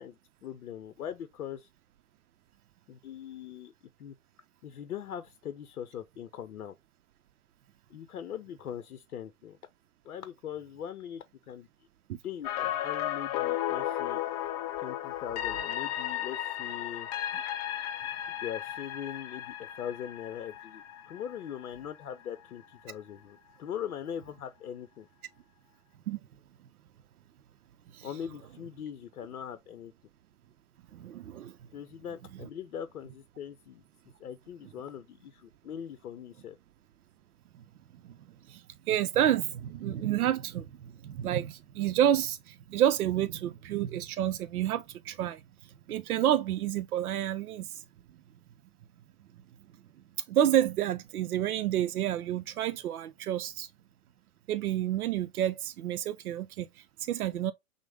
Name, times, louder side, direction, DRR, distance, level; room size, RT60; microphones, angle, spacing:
voice 1, 0.0-1.7 2.9-3.7 4.0-4.2 4.6-6.7 7.9-9.6 10.0-11.7 12.2-14.2 14.8-17.1 18.3-25.1 28.0-29.9 31.7-33.8 34.2-36.6, left 9 dB, 80° left, 0.6 m, -41 dB
sound 1, 12.4-22.5 22.8-22.9, left 12 dB, 25° left, 0.4 m, -35 dB
voice 2, 30.9-31.5 38.0-38.2 38.5-45.4 45.9-47.8 50.3-53.7 54.5-57.5, right 11 dB, 80° right, 0.5 m, -29 dB
6.1 x 2.1 x 3.4 m
hypercardioid pair, 115°, 43 cm